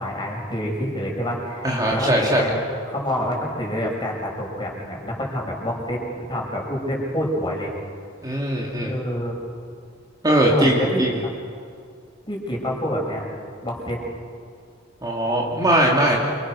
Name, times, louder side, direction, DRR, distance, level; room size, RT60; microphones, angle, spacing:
voice 1, 0.0-2.5 2.9-7.7 8.8-9.5 10.5-11.0 12.3-13.2 13.6-14.0, equal, 20° left, -1 dB, 6.6 m, -27 dB
voice 2, 1.6-2.4 8.2-9.0 10.2-11.1 15.0-16.2, right 1 dB, 20° right, -3 dB, 3.0 m, -20 dB
29.0 x 27.0 x 6.5 m, 2.2 s
head